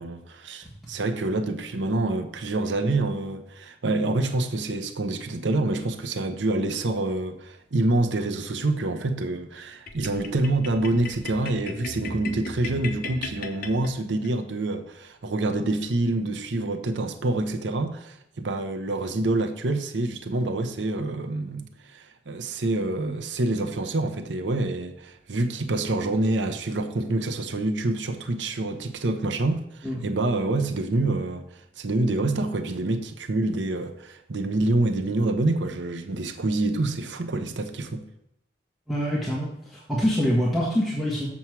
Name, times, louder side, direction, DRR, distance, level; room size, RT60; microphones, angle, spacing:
voice 1, 0.0-38.1, right 2 dB, 85° right, 0.7 m, -27 dB
sound 1, 9.9-14.3, left 3 dB, 50° left, 1.0 m, -37 dB
voice 2, 38.9-41.3, equal, ahead, 1.6 m, -25 dB
7.2 x 7.0 x 4.6 m
head